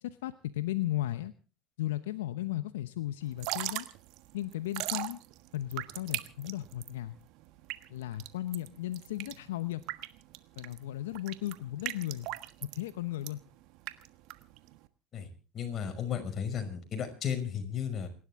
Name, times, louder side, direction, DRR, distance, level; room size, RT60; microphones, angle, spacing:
voice 1, 0.0-1.3 1.8-3.9 4.3-5.2 5.5-7.2 7.9-9.8 10.6-12.3 12.6-13.4, left 14 dB, 80° left, 13 dB, 0.8 m, -35 dB
Drip / Trickle dribble, 3.3-14.9, right 18 dB, 65° right, 1.4 m, -40 dB
voice 2, 15.1-18.1, left 8 dB, 40° left, 6 dB, 5.8 m, -34 dB
29.0 x 12.5 x 3.6 m, 0.36 s
hypercardioid pair, 75°, 0 cm